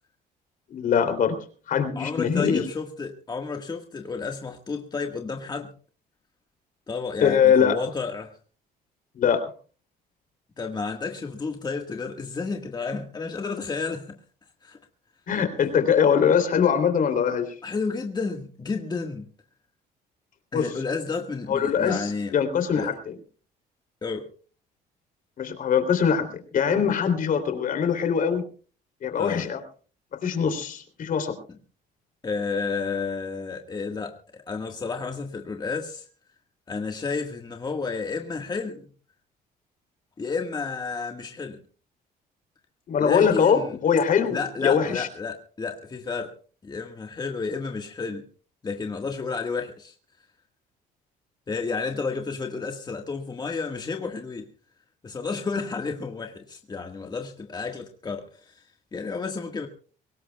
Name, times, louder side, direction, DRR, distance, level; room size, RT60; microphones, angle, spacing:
voice 1, 0.7-1.4 1.7-2.6 7.2-7.7 9.1-9.5 15.3-17.6 20.5-20.7 21.5-23.1 25.4-28.5 29.0-29.6 30.1-31.4 42.9-45.1, left 7 dB, 55° left, 3.2 m, -22 dB
voice 2, 1.9-5.7 6.9-8.3 10.6-14.2 14.6-14.8 17.6-19.3 20.5-22.3 22.7-22.9 24.0-24.3 29.2-29.5 32.2-36.1 36.7-38.9 40.2-41.6 43.0-43.7 44.3-46.3 46.6-48.2 48.6-49.9 51.5-54.5 55.0-59.7, left 4 dB, 25° left, 1.6 m, -31 dB
23.5 x 19.0 x 2.3 m
cardioid pair, 110°, 17 cm